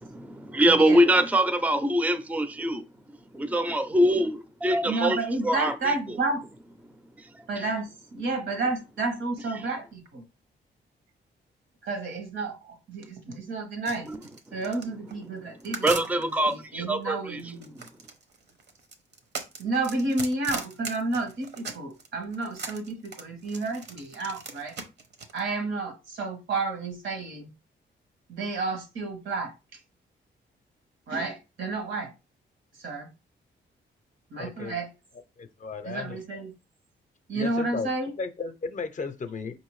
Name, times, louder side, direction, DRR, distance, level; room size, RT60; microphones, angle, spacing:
voice 1, 0.0-2.8 3.3-5.2 5.4-6.2 7.2-7.6 9.5-9.6 14.1-14.2 14.5-14.6 15.8-17.4, right 1 dB, 10° right, 0.4 m, -24 dB
voice 2, 0.6-1.0 4.8-6.4 7.5-10.2 11.8-14.1 14.5-17.8 19.6-24.8 25.3-27.5 28.3-29.8 31.1-32.1 32.8-33.1 34.3-34.9 35.8-36.5 37.3-38.1, right 3 dB, 75° right, 1.2 m, -31 dB
sound 1, 13.9-16.5 17.4-22.1 22.3-25.4, right 4 dB, 60° right, 0.8 m, -38 dB
voice 3, 34.4-34.8 35.4-36.2 37.3-37.9 38.2-39.6, left 4 dB, 40° left, 0.5 m, -34 dB
4.8 x 2.6 x 3.1 m
cardioid pair, 95°, 19 cm